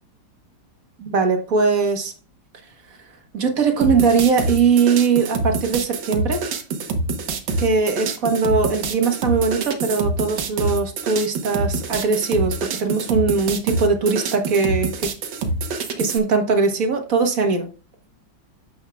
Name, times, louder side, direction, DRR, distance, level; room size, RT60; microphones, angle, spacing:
voice 1, 1.0-2.1 3.3-6.4 7.6-12.5 12.8-15.1 16.0-17.7, right 5 dB, 50° right, 1.6 m, -20 dB
sound 1, 3.8-16.2, right 3 dB, 80° right, 1.8 m, -26 dB
9.2 x 7.3 x 2.3 m
omnidirectional pair, 2.0 m